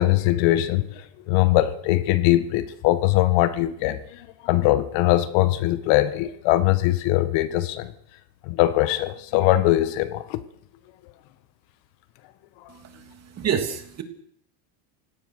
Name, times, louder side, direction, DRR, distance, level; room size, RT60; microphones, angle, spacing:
voice 1, 0.0-7.9 8.4-10.4 12.6-12.7, left 15 dB, 65° left, 1.7 m, -21 dB
voice 2, 12.7-14.0, right 7 dB, 30° right, 3.1 m, -29 dB
29.0 x 17.0 x 6.7 m
cardioid pair, 160°, 49 cm